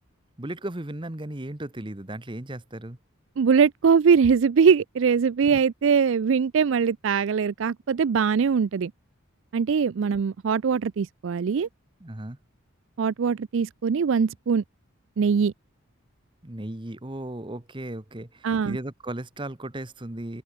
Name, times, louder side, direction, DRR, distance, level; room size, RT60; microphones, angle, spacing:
voice 1, 0.4-3.0 12.0-12.4 16.4-20.4, right 1 dB, 25° right, 1.1 m, -36 dB
voice 2, 3.4-8.9 9.5-11.7 13.0-14.6 15.2-15.5 18.4-18.8, right 6 dB, 60° right, 0.4 m, -22 dB
open air
head